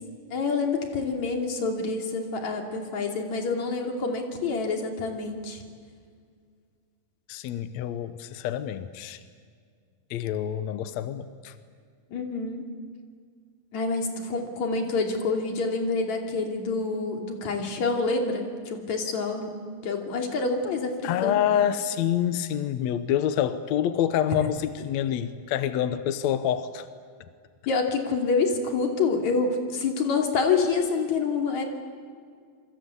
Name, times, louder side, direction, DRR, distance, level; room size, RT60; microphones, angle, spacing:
voice 1, 0.3-5.6 12.1-12.7 13.7-19.5 19.8-21.0 21.2-21.4 27.7-31.7, left 4 dB, 50° left, 3 dB, 3.9 m, -27 dB
voice 2, 7.3-9.2 10.1-11.5 21.0-26.9, left 10 dB, 75° left, 11 dB, 1.7 m, -27 dB
27.5 x 24.0 x 8.3 m, 2.1 s
omnidirectional pair, 4.3 m